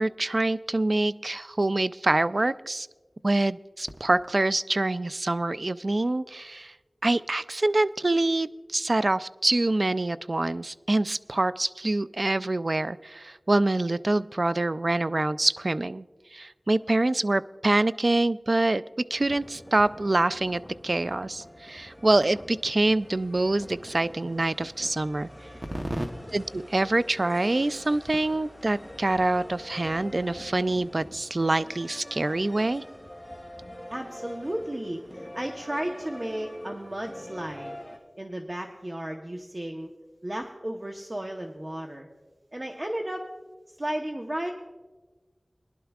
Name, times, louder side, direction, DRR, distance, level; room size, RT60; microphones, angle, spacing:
voice 1, 0.0-2.9 3.2-6.7 7.0-16.1 16.3-18.8 19.1-25.3 26.3-32.8, right 2 dB, 60° right, 16 dB, 0.3 m, -25 dB
sound 1, 19.1-38.0, equal, 5° left, 2.4 m, -44 dB
voice 2, 25.7-26.1 33.9-37.7 38.2-39.9 40.2-42.1 42.5-43.2 43.8-44.5, right 1 dB, 35° right, 2 dB, 0.9 m, -33 dB
22.0 x 11.5 x 2.4 m, 1.2 s
wide cardioid pair, 40°, 0 cm